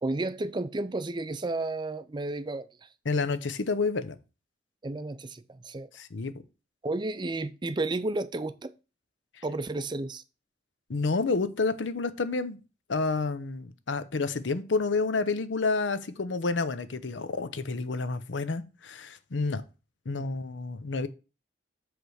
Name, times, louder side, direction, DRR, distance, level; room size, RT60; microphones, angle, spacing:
voice 1, 0.0-2.9 4.8-5.9 6.8-8.7 9.4-10.2, right 2 dB, 25° right, 0.4 m, -32 dB
voice 2, 3.1-4.2 5.9-6.3 10.9-12.6 12.9-19.6 20.1-21.1, left 3 dB, 90° left, 0.7 m, -29 dB
7.9 x 3.3 x 6.4 m
head